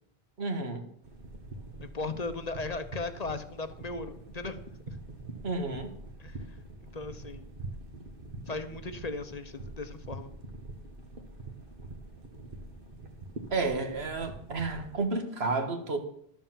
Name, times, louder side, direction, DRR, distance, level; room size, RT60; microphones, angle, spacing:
voice 1, 0.4-0.8 5.4-5.9 13.5-16.0, right 3 dB, 70° right, 6 dB, 1.7 m, -31 dB
sound 1, 1.0-15.0, right 2 dB, 55° right, 1.6 m, -45 dB
voice 2, 1.8-4.6 4.9-5.0 6.2-6.6 6.9-7.5 8.5-10.3, left 3 dB, 40° left, 9 dB, 0.9 m, -37 dB
11.5 x 6.9 x 7.4 m, 0.69 s
omnidirectional pair, 1.1 m